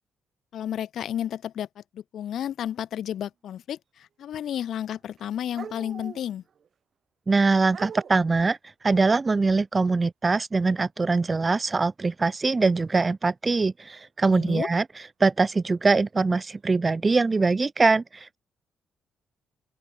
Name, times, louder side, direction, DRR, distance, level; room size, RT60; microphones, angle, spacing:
voice 1, 0.5-6.4 14.3-14.7, left 10 dB, 70° left, 4.7 m, -32 dB
sound 1, 4.2-4.7 4.9-6.7 7.7-8.3 12.4-12.7 13.9-14.0 16.1-16.2 17.1-17.3, right 7 dB, 50° right, 6.3 m, -43 dB
voice 2, 7.3-8.6 8.8-14.8 15.2-18.4, right 3 dB, 25° right, 0.5 m, -23 dB
open air
cardioid pair, 90°, 0 cm